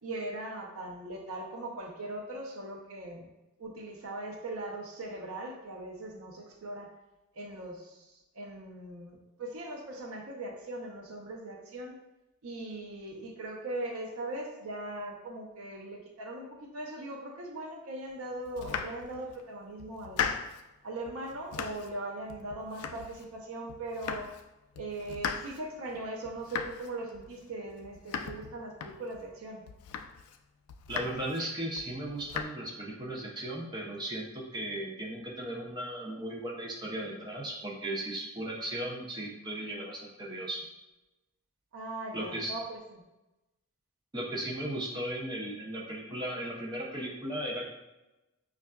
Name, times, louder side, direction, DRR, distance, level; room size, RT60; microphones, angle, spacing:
voice 1, 0.0-3.3 3.6-6.9 7.3-12.0 12.4-20.2 20.8-24.3 24.8-29.6 41.7-43.0, right 2 dB, 80° right, 0 dB, 0.6 m, -40 dB
Domestic sounds home sounds, 18.4-19.4 19.8-20.7 21.1-22.0 22.3-23.4 23.7-24.5 24.7-29.3 29.7-30.4 30.7-31.4 31.8-32.4, left 7 dB, 90° left, 0.3 m, -38 dB
voice 2, 30.9-40.6 42.1-42.5 44.1-47.6, right 1 dB, 20° right, -3 dB, 0.6 m, -36 dB
5.2 x 2.5 x 2.2 m, 1.0 s
head